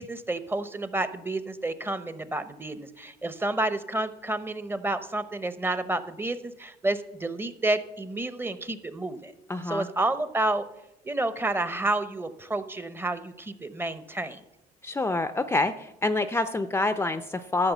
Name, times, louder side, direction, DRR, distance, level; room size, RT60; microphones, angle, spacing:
voice 1, 0.0-9.3 9.7-10.7 11.0-14.4, right 2 dB, 15° right, 12 dB, 0.8 m, -30 dB
voice 2, 9.5-9.9 14.8-17.7, left 2 dB, 15° left, 10 dB, 0.5 m, -27 dB
13.0 x 6.2 x 7.1 m, 0.91 s
cardioid pair, 110°, 17 cm